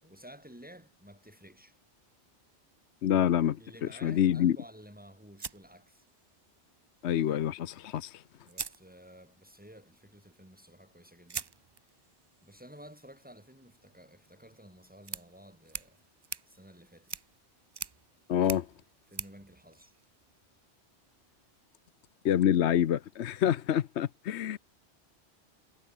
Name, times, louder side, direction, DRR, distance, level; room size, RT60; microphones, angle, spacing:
voice 1, 0.0-1.8 3.6-6.1 8.4-11.5 12.4-16.0 16.5-17.1 19.1-19.9, equal, 5° right, 6.2 m, -53 dB
voice 2, 3.0-4.5 7.0-8.2 18.3-18.7 22.2-24.6, left 10 dB, 70° left, 1.0 m, -27 dB
sound 1, 5.4-6.5 7.8-7.9 8.4-9.5 11.3-20.5, right 5 dB, 40° right, 0.3 m, -45 dB
omnidirectional pair, 1.2 m